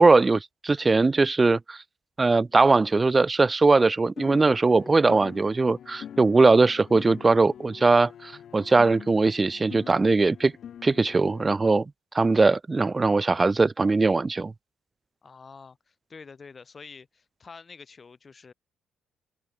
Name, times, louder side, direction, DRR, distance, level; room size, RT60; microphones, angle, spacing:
voice 1, 0.0-1.8 2.2-10.5 10.8-14.5, right 3 dB, 25° right, 0.6 m, -20 dB
sound 1, 4.2-11.6, left 9 dB, 65° left, 6.1 m, -44 dB
voice 2, 15.2-18.5, left 5 dB, 35° left, 7.6 m, -47 dB
open air
cardioid pair, 90°, 0 cm